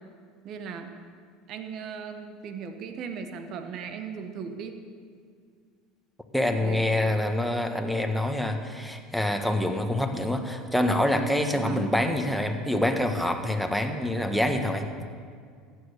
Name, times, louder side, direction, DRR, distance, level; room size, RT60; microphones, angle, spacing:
voice 1, 0.4-0.9 1.5-4.8 6.5-7.1 11.5-11.9, right 6 dB, 55° right, 7 dB, 1.3 m, -38 dB
voice 2, 6.3-14.8, left 1 dB, ahead, 5 dB, 1.5 m, -26 dB
14.5 x 9.6 x 6.6 m, 2.1 s
hypercardioid pair, 80°, 0 cm